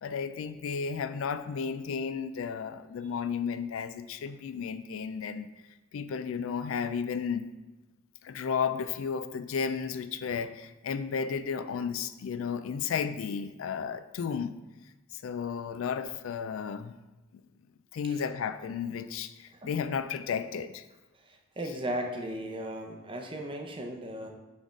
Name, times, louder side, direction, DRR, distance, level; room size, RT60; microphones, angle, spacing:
voice 1, 0.0-5.5 5.9-7.5 8.2-14.5 15.1-16.9 17.9-20.8, left 6 dB, 75° left, 12 dB, 0.3 m, -33 dB
voice 2, 21.1-24.3, right 1 dB, 25° right, 3 dB, 0.7 m, -37 dB
6.2 x 3.4 x 5.2 m, 1.1 s
head